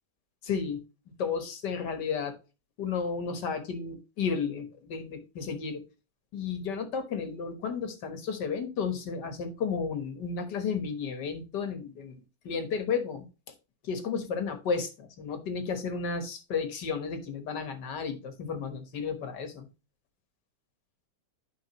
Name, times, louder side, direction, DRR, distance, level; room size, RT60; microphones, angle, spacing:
voice 1, 0.4-0.8 1.2-2.4 2.8-5.8 6.3-12.2 12.4-13.3 13.8-19.7, left 5 dB, 65° left, 8 dB, 1.9 m, -33 dB
10.5 x 5.3 x 3.0 m, 0.30 s
omnidirectional pair, 2.0 m